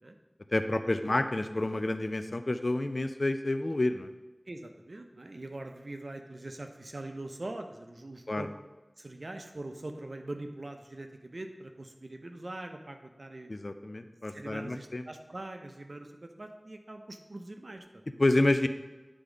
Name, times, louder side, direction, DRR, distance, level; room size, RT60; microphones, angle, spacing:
voice 1, 0.5-4.1 8.3-8.5 13.5-15.1 18.2-18.7, left 2 dB, 65° left, 9 dB, 0.5 m, -29 dB
voice 2, 4.5-8.5 9.0-13.5 14.3-18.2, right 2 dB, 75° right, 5 dB, 0.7 m, -43 dB
9.9 x 3.6 x 5.1 m, 1.2 s
wide cardioid pair, 45°, 0 cm